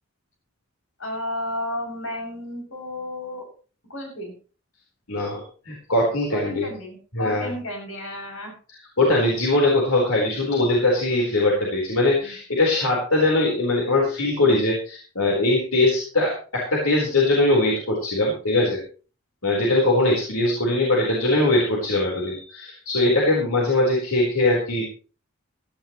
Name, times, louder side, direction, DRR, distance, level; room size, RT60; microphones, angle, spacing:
voice 1, 1.0-3.5 3.9-4.3 6.3-8.5, left 1 dB, 70° left, 0 dB, 7.3 m, -32 dB
voice 2, 5.1-6.7 7.1-7.5 9.0-18.8 19.4-24.9, left 2 dB, 90° left, -2 dB, 4.4 m, -21 dB
17.0 x 14.0 x 3.2 m, 0.37 s
head